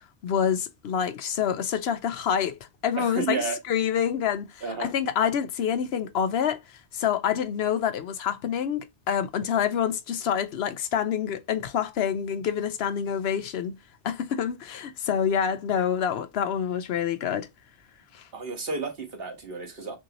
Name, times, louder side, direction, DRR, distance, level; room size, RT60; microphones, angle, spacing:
voice 1, 0.2-13.8 14.0-17.5 18.1-18.3, left 8 dB, 70° left, 0.8 m, -27 dB
voice 2, 3.0-3.6 4.6-4.9 18.3-20.0, right 4 dB, 60° right, 1.5 m, -32 dB
6.0 x 2.7 x 2.9 m
omnidirectional pair, 1.1 m